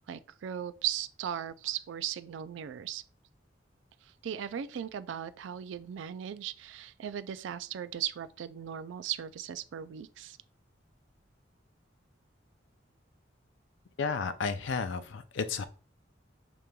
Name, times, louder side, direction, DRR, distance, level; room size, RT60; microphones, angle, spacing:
voice 1, 0.1-3.0 4.0-10.4, right 10 dB, 80° right, 0.3 m, -37 dB
voice 2, 14.0-15.6, left 5 dB, 80° left, 0.4 m, -32 dB
5.0 x 3.0 x 2.2 m
head